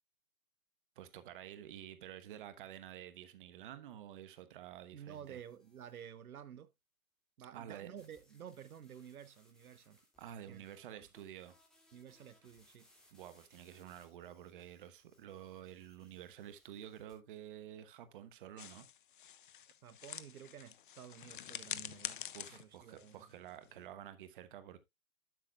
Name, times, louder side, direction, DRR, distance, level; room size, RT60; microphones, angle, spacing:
voice 1, 1.0-5.4 7.5-7.9 10.2-11.5 13.1-18.9 22.3-24.8, right 11 dB, 35° right, 1.1 m, -50 dB
voice 2, 4.9-6.7 7.4-10.0 10.5-10.6 10.9-11.0 11.9-12.9 19.8-23.2, right 9 dB, 80° right, 0.8 m, -52 dB
sound 1, 5.1-6.2 7.9-17.1, left 1 dB, ahead, 2.4 m, -70 dB
sound 2, 18.6-23.9, left 10 dB, 35° left, 0.5 m, -47 dB
12.0 x 6.3 x 2.3 m
hypercardioid pair, 135°, 43 cm